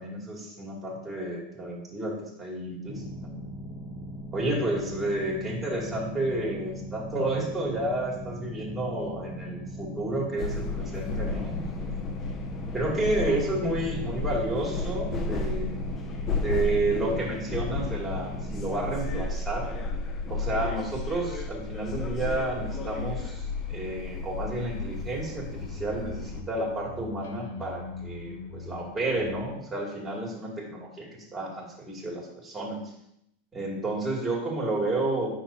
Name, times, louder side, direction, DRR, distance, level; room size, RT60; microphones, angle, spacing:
voice 1, 0.0-3.3 4.3-12.1 12.7-15.8 16.4-19.7 20.3-32.8 33.5-35.3, right 2 dB, 15° right, -3 dB, 2.5 m, -31 dB
sound 1, 2.8-18.8, equal, 15° left, 2.5 m, -40 dB
sound 2, 10.4-26.4, left 3 dB, 30° left, 0.7 m, -33 dB
sound 3, 21.8-29.6, left 3 dB, 75° left, 1.0 m, -43 dB
8.9 x 6.2 x 2.8 m, 0.79 s
hypercardioid pair, 120°, 0 cm